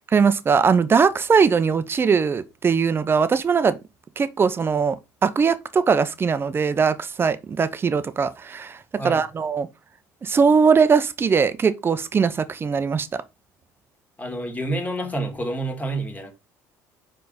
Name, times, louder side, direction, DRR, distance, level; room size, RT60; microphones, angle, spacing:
voice 1, 0.1-3.8 4.2-5.0 5.2-8.8 9.0-9.7 10.2-13.2, right 5 dB, 30° right, 0.8 m, -20 dB
voice 2, 14.2-16.3, right 1 dB, 20° left, 2.1 m, -28 dB
5.1 x 4.7 x 4.0 m
supercardioid pair, 80°, 7 cm